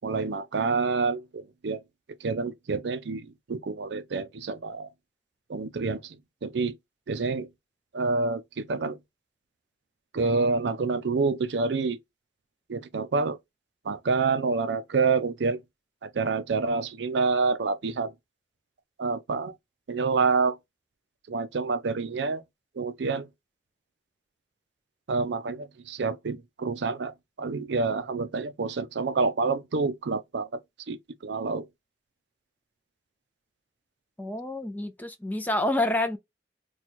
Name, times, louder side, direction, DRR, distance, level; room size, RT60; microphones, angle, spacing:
voice 1, 0.0-1.8 2.2-4.9 5.5-6.7 7.1-7.5 7.9-9.0 10.1-12.0 12.7-13.4 13.9-15.6 16.0-18.1 19.0-19.5 19.9-20.6 21.3-22.4 22.8-23.3 25.1-30.5 30.9-31.0 31.2-31.7, right 4 dB, 90° right, 0.5 m, -27 dB
voice 2, 34.2-36.2, left 1 dB, 10° left, 0.4 m, -28 dB
2.9 x 2.3 x 4.2 m
head